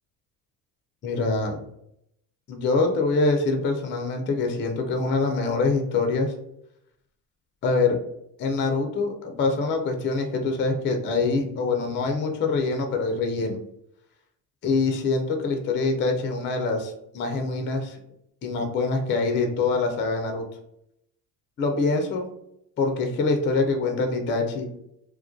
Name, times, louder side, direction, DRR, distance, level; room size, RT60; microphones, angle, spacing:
voice 1, 1.0-1.6 2.5-6.3 7.6-8.0 8.4-13.6 14.6-18.0 18.4-20.5 21.6-22.3 22.8-24.7, left 3 dB, 25° left, 4 dB, 0.4 m, -24 dB
2.2 x 2.2 x 2.5 m, 0.77 s
supercardioid pair, 80°, 47 cm